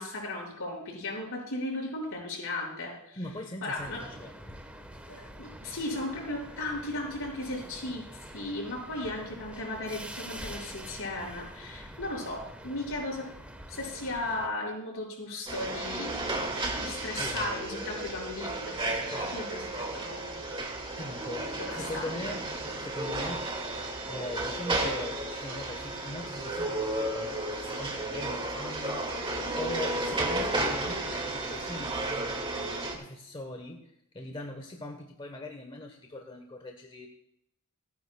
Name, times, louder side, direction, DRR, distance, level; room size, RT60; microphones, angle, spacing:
voice 1, 0.0-3.2 3.6-4.0 5.1-13.2 13.7-16.2 16.8-20.8 21.6-22.1, left 2 dB, 65° left, -1 dB, 5.6 m, -36 dB
voice 2, 3.2-4.3 17.2-17.6 19.1-19.3 21.0-21.5 21.7-22.5 22.7-23.5 24.1-29.1 29.5-37.1, left 1 dB, 25° left, 3 dB, 1.1 m, -41 dB
sound 1, 3.8-14.5, right 1 dB, 5° right, 1.2 m, -46 dB
sound 2, 15.5-32.9, right 2 dB, 25° right, 2.1 m, -33 dB
27.5 x 9.7 x 2.3 m, 0.78 s
head